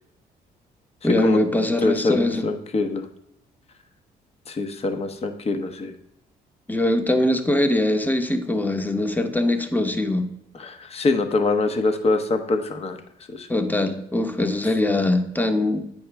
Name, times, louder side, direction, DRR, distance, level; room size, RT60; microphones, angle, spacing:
voice 1, 1.0-2.5 6.7-10.3 13.5-15.8, left 1 dB, 10° left, 7 dB, 0.9 m, -22 dB
voice 2, 1.8-3.0 4.5-5.9 10.6-13.0 13.3-13.5, left 3 dB, 35° left, 8 dB, 0.8 m, -24 dB
8.4 x 5.9 x 3.4 m, 0.81 s
supercardioid pair, 75°, 17 cm